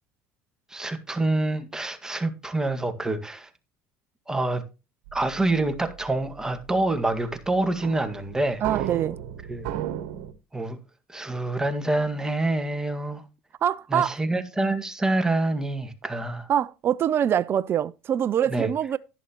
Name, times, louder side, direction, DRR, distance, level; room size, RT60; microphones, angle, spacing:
voice 1, 0.7-3.5 4.3-4.6 5.1-8.6 9.5-9.7 10.5-10.8 11.1-13.2 13.9-16.5 18.5-18.7, right 2 dB, 10° right, 1.9 m, -26 dB
sound 1, 5.1-10.3, right 11 dB, 80° right, 1.4 m, -36 dB
voice 2, 8.6-9.2 13.6-14.2 16.5-19.0, right 9 dB, 45° right, 0.5 m, -24 dB
11.0 x 11.0 x 3.0 m
supercardioid pair, 95°, 6 cm